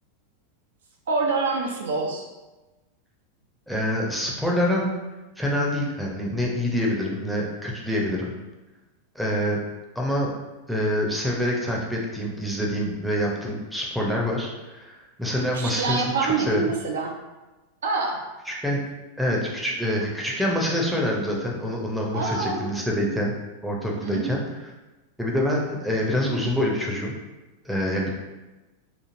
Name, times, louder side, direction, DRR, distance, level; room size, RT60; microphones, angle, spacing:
voice 1, 1.1-2.3 15.5-17.1 17.8-18.2 22.1-22.6 24.0-24.3, right 4 dB, 65° right, 1 dB, 0.4 m, -26 dB
voice 2, 3.7-4.9 5.4-8.3 9.1-9.6 10.0-10.3 10.7-16.7 18.5-18.8 19.2-23.3 23.6-24.4 25.2-27.1 27.6-28.1, equal, ahead, -3 dB, 0.5 m, -26 dB
3.0 x 2.4 x 2.5 m, 1.1 s
figure-of-eight pair, 90°, 0 cm